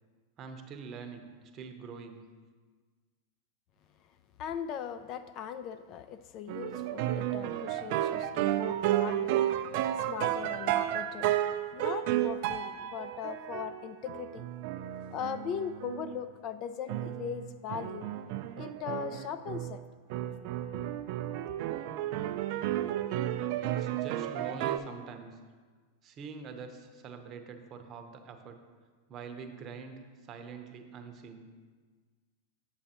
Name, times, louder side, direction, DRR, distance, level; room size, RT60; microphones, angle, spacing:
voice 1, 0.4-2.3 23.7-25.4 26.0-28.6 29.1-30.0 30.3-31.5, right 5 dB, 35° right, 6 dB, 0.7 m, -44 dB
voice 2, 4.4-9.5 10.0-11.3 11.7-14.5 15.1-18.1 18.6-19.8 20.7-20.8, left 8 dB, 45° left, 11 dB, 0.3 m, -39 dB
sound 1, 6.5-16.2 16.9-19.8 20.1-24.8, right 12 dB, 55° right, 0.3 m, -32 dB
7.8 x 6.9 x 2.9 m, 1.5 s
hypercardioid pair, 105°, 0 cm